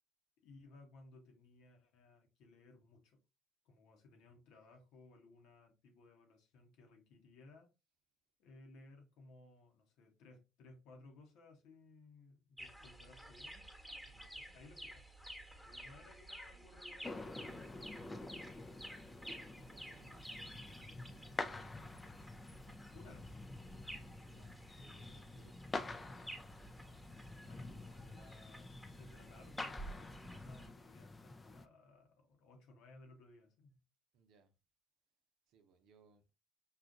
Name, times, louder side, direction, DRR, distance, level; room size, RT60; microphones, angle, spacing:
voice 1, 0.4-3.2 3.6-7.7 8.4-13.7 14.5-15.0 15.6-18.9 22.9-23.4 27.4-33.8, left 2 dB, 70° left, 1.0 m, -61 dB
sound 1, 12.6-30.7, right 1 dB, ahead, 1.1 m, -53 dB
voice 2, 14.0-14.5 19.4-21.8 24.3-26.2 34.1-34.5 35.5-36.2, right 5 dB, 70° right, 0.7 m, -68 dB
sound 2, 17.0-31.7, left 2 dB, 25° left, 0.4 m, -48 dB
5.5 x 2.4 x 2.4 m
hypercardioid pair, 65°, 0 cm